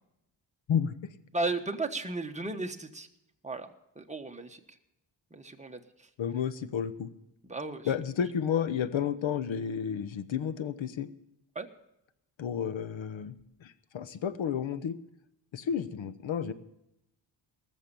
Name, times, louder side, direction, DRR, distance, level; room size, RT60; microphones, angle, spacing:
voice 1, 1.3-3.1 3.4-3.7 3.9-4.6 5.3-6.1 7.4-7.9 11.5-11.7, right 3 dB, 15° right, 4 dB, 1.3 m, -35 dB
voice 2, 6.2-7.1 7.8-11.1 12.4-13.3 13.6-14.9 15.5-16.5, left 8 dB, 80° left, 13 dB, 1.0 m, -31 dB
19.5 x 7.3 x 6.9 m, 0.85 s
wide cardioid pair, 105°, 46 cm